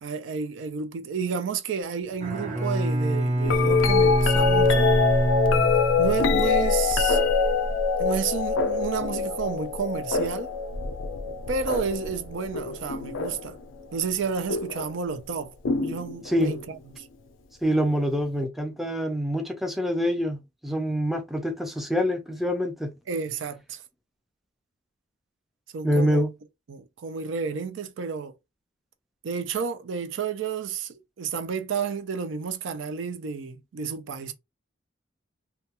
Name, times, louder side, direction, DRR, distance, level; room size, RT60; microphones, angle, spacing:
voice 1, 0.0-4.9 6.0-7.2 8.0-10.5 11.5-13.6 13.9-15.5 15.8-17.1 23.1-23.8 25.7-26.3 26.7-28.3 29.2-34.3, right 6 dB, 75° right, 0.4 m, -31 dB
Bowed string instrument, 2.1-6.5, right 1 dB, 40° right, 1.0 m, -26 dB
sound 1, 3.4-13.6 14.5-14.9 15.6-16.6 18.4-18.5, left 4 dB, 80° left, 0.4 m, -24 dB
voice 2, 16.3-16.6 17.6-22.9 25.8-26.3, equal, ahead, 0.4 m, -25 dB
2.2 x 2.2 x 2.8 m
head